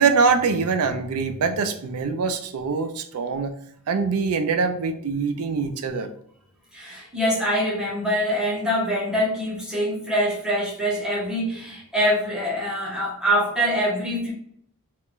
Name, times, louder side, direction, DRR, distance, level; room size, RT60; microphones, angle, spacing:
voice 1, 0.0-3.5 3.9-6.1, right 5 dB, 70° right, 7 dB, 0.4 m, -23 dB
voice 2, 6.7-14.3, equal, 5° right, -5 dB, 0.7 m, -24 dB
2.4 x 2.1 x 3.6 m, 0.68 s
head